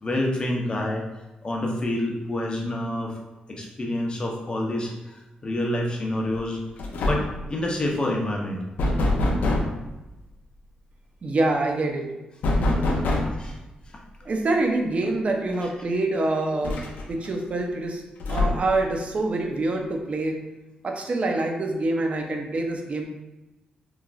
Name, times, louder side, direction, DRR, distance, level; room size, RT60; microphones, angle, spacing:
voice 1, 0.0-1.0 1.4-3.1 3.5-6.6 7.0-8.6 13.4-13.6, left 1 dB, 35° left, -1 dB, 0.6 m, -27 dB
sound 1, 6.3-6.5 6.8-7.4 8.8-9.8 12.4-13.5 15.0-15.1 15.5-15.6 16.6-17.3 18.2-18.8, left 1 dB, 80° left, 0.4 m, -24 dB
voice 2, 11.2-12.1 14.3-16.8 17.1-18.0 18.3-20.4 20.8-23.0, right 2 dB, 50° right, 2 dB, 0.5 m, -25 dB
3.1 x 2.4 x 2.3 m, 1.0 s
cardioid pair, 90°, 3 cm